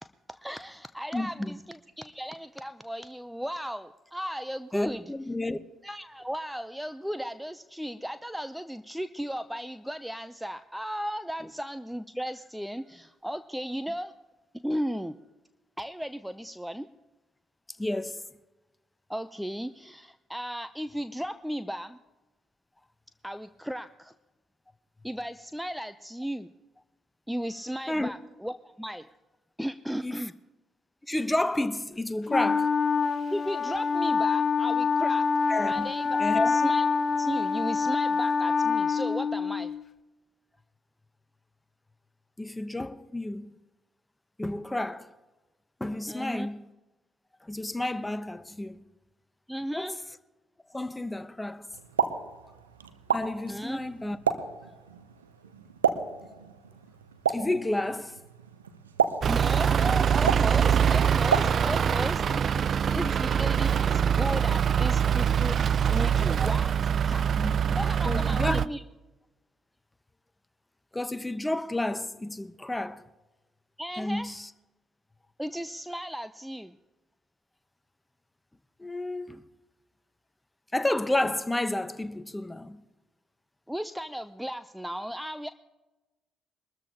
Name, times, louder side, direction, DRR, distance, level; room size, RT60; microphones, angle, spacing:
voice 1, 0.3-5.0 5.8-14.1 14.6-15.1 15.8-16.9 19.1-22.0 23.2-24.1 25.0-26.5 27.3-29.1 29.6-30.3 33.3-35.3 35.7-36.2 36.5-36.8 37.2-39.7 46.1-46.5 49.5-50.0 53.5-53.8 59.2-65.6 65.9-66.7 67.0-68.8 73.8-74.3 75.4-76.7 83.7-85.5, equal, 5° right, 0.6 m, -35 dB
voice 2, 1.1-1.6 4.7-5.6 11.4-11.5 17.8-18.2 27.9-28.1 30.0-30.3 31.1-32.7 35.5-35.9 36.2-36.6 42.4-43.6 44.4-45.1 45.8-46.7 47.4-48.8 49.7-49.9 50.7-51.7 53.1-54.2 57.3-58.2 62.3-62.4 62.9-63.1 67.4-68.6 70.9-73.0 74.0-74.5 78.8-79.4 80.7-82.8, left 1 dB, 15° left, 1.0 m, -31 dB
Wind instrument woodwind instrument, 32.3-39.8, left 5 dB, 45° left, 0.7 m, -26 dB
Explosion, 51.7-62.0, right 7 dB, 90° right, 0.6 m, -32 dB
Truck / Idling, 59.2-68.7, right 8 dB, 50° right, 0.3 m, -24 dB
22.5 x 13.5 x 2.9 m
figure-of-eight pair, 45°, 0 cm